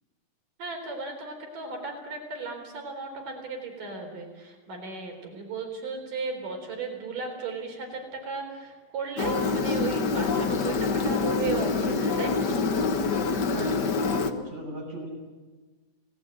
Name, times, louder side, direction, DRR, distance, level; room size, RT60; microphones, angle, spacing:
voice 1, 0.6-12.8, right 4 dB, 65° right, 3 dB, 5.6 m, -35 dB
Engine, 9.2-14.3, left 4 dB, 60° left, 1.1 m, -26 dB
voice 2, 13.5-15.1, right 1 dB, 50° right, 0 dB, 8.4 m, -37 dB
29.5 x 18.5 x 9.1 m, 1.3 s
omnidirectional pair, 4.0 m